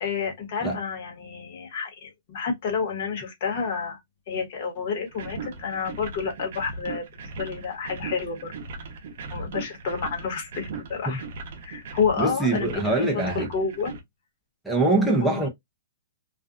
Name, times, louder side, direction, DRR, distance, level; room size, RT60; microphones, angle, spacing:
voice 1, 0.0-4.0 4.3-7.0 7.4-8.5 9.3-11.2 11.6-13.0 13.3-13.9 15.2-15.4, left 5 dB, 40° left, 1.1 m, -29 dB
sound 1, 5.1-14.0, right 4 dB, 50° right, 0.7 m, -38 dB
voice 2, 12.2-13.5 14.6-15.5, right 2 dB, ahead, 0.5 m, -23 dB
2.5 x 2.2 x 2.4 m
hypercardioid pair, 170°, 0 cm